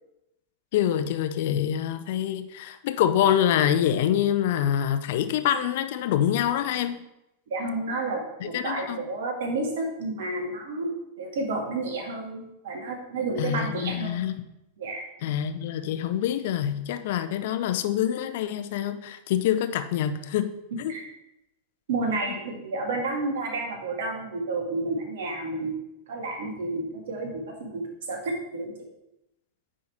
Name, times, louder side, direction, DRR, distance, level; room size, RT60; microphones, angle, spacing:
voice 1, 0.7-7.0 8.4-9.0 13.4-14.3 15.2-20.5 20.8-20.9, left 10 dB, 50° left, 9 dB, 0.6 m, -25 dB
voice 2, 7.5-10.9 11.2-14.2 14.8-15.0 20.7-21.1 21.9-25.7 26.1-28.7, right 2 dB, 60° right, 1 dB, 1.8 m, -31 dB
9.5 x 3.7 x 4.3 m, 0.89 s
figure-of-eight pair, 90°, 0 cm